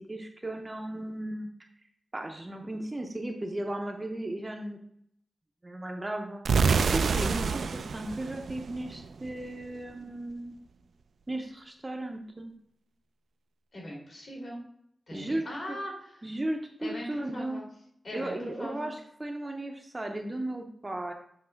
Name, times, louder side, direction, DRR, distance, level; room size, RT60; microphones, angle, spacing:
voice 1, 0.0-1.7 2.1-4.8 5.6-6.6 6.9-10.5 11.3-12.5 15.1-15.8 16.2-17.6 18.1-21.1, right 1 dB, 20° right, 3 dB, 0.6 m, -36 dB
sound 1, 6.5-9.3, right 5 dB, 75° right, 0.3 m, -27 dB
voice 2, 7.1-7.6 13.7-14.6 15.1-16.2 16.8-17.7 18.0-18.9, equal, 50° left, -2 dB, 2.6 m, -40 dB
7.7 x 3.2 x 5.7 m, 0.70 s
wide cardioid pair, 175°, 0 cm